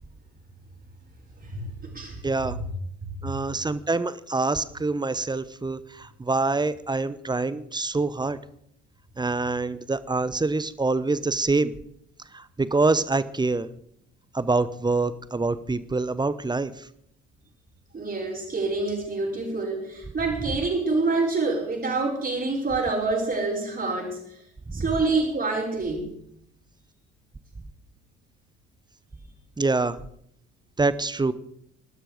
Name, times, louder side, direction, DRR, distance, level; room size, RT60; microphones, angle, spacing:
voice 1, 2.2-2.6 3.2-8.4 9.2-11.7 12.3-13.7 14.3-16.9 24.7-24.8 29.6-30.0 30.8-31.3, right 3 dB, 15° right, 16 dB, 1.0 m, -25 dB
voice 2, 17.9-24.4 24.7-26.1, right 3 dB, 30° right, -6 dB, 5.5 m, -27 dB
21.0 x 12.5 x 5.2 m, 0.71 s
figure-of-eight pair, 55°, 33 cm